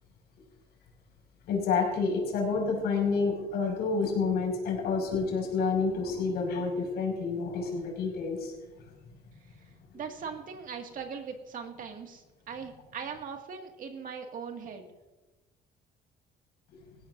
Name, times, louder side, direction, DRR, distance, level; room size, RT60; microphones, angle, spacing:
voice 1, 1.5-8.5, left 4 dB, 75° left, 0 dB, 5.8 m, -29 dB
voice 2, 9.6-14.9, right 6 dB, 55° right, 4 dB, 2.1 m, -40 dB
19.0 x 15.5 x 2.7 m, 1.1 s
cardioid pair, 110°, 17 cm